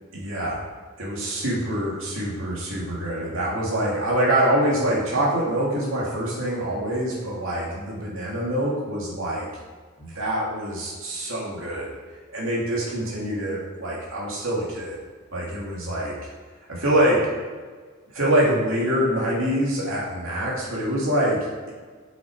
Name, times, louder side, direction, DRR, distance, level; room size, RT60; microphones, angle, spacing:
voice 1, 0.1-0.6 1.0-9.5 10.0-11.9 12.3-15.0 15.3-16.1 16.7-17.2 18.1-21.7, right 1 dB, 80° right, -4 dB, 2.6 m, -25 dB
7.8 x 6.1 x 4.9 m, 1.5 s
head